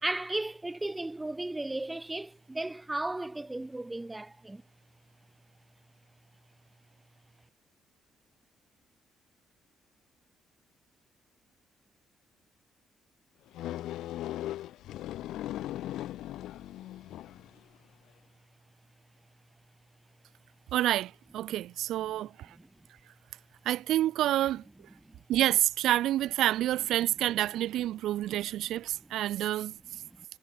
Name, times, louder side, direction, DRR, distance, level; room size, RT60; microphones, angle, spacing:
voice 1, 0.0-4.6 22.6-22.7 25.0-25.2 30.2-30.3, right 2 dB, 10° right, 1.7 m, -35 dB
sound 1, 13.5-17.6, left 14 dB, 90° left, 1.2 m, -38 dB
voice 2, 20.7-22.6 23.6-24.7 25.3-30.0, right 13 dB, 80° right, 0.8 m, -28 dB
cardioid pair, 175°, 0 cm